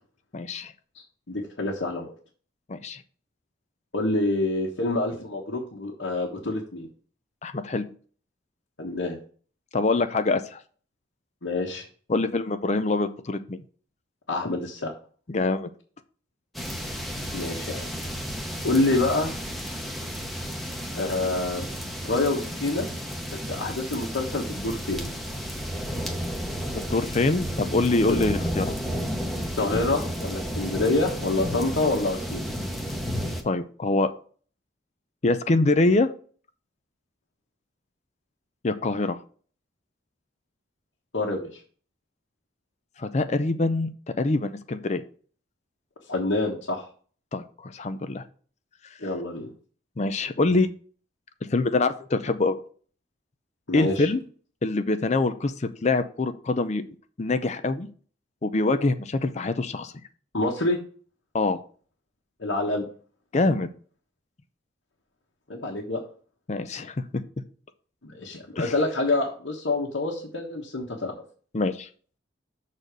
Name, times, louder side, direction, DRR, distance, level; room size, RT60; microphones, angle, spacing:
voice 1, 0.3-0.7 2.7-3.0 7.4-7.9 9.7-10.6 12.1-13.6 15.3-15.7 26.9-28.7 33.4-34.1 35.2-36.1 38.6-39.2 43.0-43.9 44.2-45.0 47.3-48.2 50.0-50.7 51.5-52.6 53.7-54.2 54.6-56.8 57.2-57.9 58.4-59.9 61.3-61.6 63.3-63.7 66.5-67.0 68.6-68.7 71.5-71.9, left 2 dB, 35° left, 11 dB, 0.5 m, -24 dB
voice 2, 1.3-2.1 3.9-6.9 8.8-9.2 11.4-11.8 14.3-14.9 17.3-17.9 18.6-19.3 20.9-21.6 22.0-22.9 23.5-25.1 29.6-32.5 41.1-41.5 46.1-46.8 49.0-49.5 53.7-54.1 60.3-60.8 62.4-62.8 65.5-66.0 68.0-71.1, left 2 dB, 75° left, -3 dB, 1.4 m, -27 dB
Rain & Thunder VA, 16.5-33.4, equal, ahead, 0.9 m, -32 dB
6.7 x 4.1 x 6.2 m, 0.43 s
head